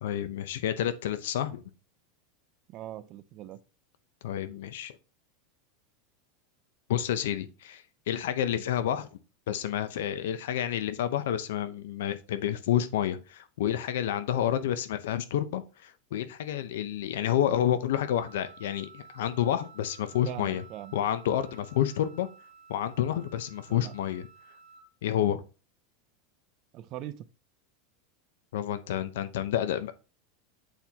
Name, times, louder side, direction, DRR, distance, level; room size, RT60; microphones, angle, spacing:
voice 1, 0.0-1.6 4.2-4.9 6.9-9.1 9.5-20.6 20.9-22.3 22.7-24.3 25.0-25.4 28.5-29.9, left 11 dB, 75° left, 0.5 m, -29 dB
voice 2, 2.7-3.6 20.2-20.9 23.7-23.9 26.7-27.3, right 13 dB, 30° right, 0.4 m, -41 dB
Wind instrument woodwind instrument, 17.9-24.9, right 5 dB, 20° left, 0.7 m, -53 dB
8.1 x 4.3 x 2.8 m
supercardioid pair, 180°, 0 cm